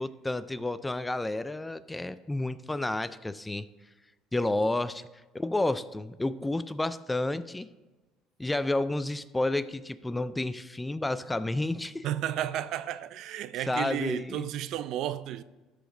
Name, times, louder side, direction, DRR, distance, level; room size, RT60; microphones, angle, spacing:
voice 1, 0.0-3.7 4.3-5.0 5.3-7.7 8.4-12.1 13.7-14.5, left 2 dB, 10° left, 0.4 m, -30 dB
voice 2, 12.0-15.4, right 12 dB, 65° right, 0.4 m, -33 dB
13.0 x 5.1 x 3.8 m
supercardioid pair, 100°, 0 cm